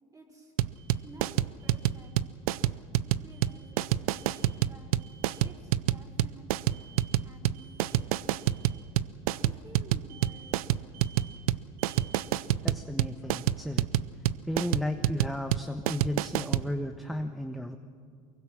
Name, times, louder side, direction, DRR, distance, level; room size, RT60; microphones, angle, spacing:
voice 1, 0.1-0.5 1.0-2.1 3.0-4.1 4.6-4.9 5.4-8.3 9.3-11.5, right 2 dB, 20° right, 1 dB, 5.5 m, -53 dB
sound 1, 0.6-16.7, right 13 dB, 85° right, 0.5 m, -27 dB
Alarm, 0.7-1.2 1.6-2.0 3.3-3.8 4.1-4.6 5.0-5.5 6.7-7.2 7.5-8.0 8.4-8.8 10.1-10.6 10.9-11.4 11.8-12.3, right 7 dB, 65° right, 2.4 m, -54 dB
voice 2, 12.6-13.9 14.4-17.8, left 1 dB, ahead, 6 dB, 1.1 m, -34 dB
24.0 x 22.5 x 6.3 m, 2.2 s
supercardioid pair, 90°, 18 cm